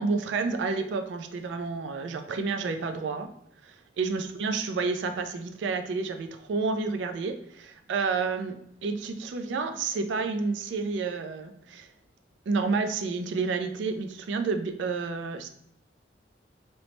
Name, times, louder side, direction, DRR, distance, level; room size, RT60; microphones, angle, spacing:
voice 1, 0.0-3.3 3.6-8.6 8.8-11.9 12.5-15.5, right 4 dB, 80° right, 7 dB, 0.3 m, -30 dB
3.0 x 2.0 x 3.0 m, 0.70 s
head